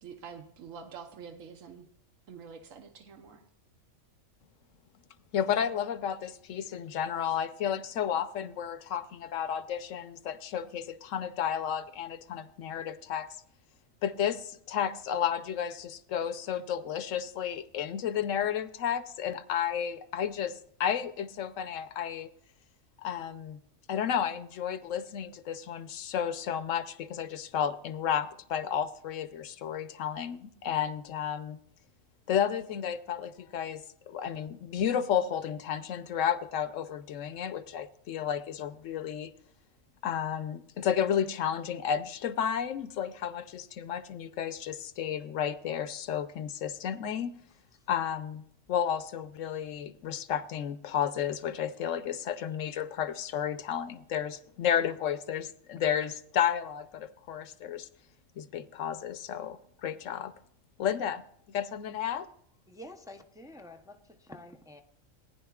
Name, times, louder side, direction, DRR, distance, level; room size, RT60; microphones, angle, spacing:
voice 1, 0.0-1.9 2.3-3.4, right 6 dB, 85° right, 1.3 m, -46 dB
voice 2, 5.3-13.3 14.0-22.3 23.0-23.6 23.9-31.6 32.3-39.3 40.0-47.3 47.9-48.4 48.7-57.9 58.4-60.3 60.8-61.2 61.5-62.3, left 9 dB, 75° left, 1.0 m, -32 dB
voice 3, 62.7-64.8, left 1 dB, 5° right, 0.4 m, -48 dB
19.0 x 10.5 x 2.4 m
omnidirectional pair, 1.3 m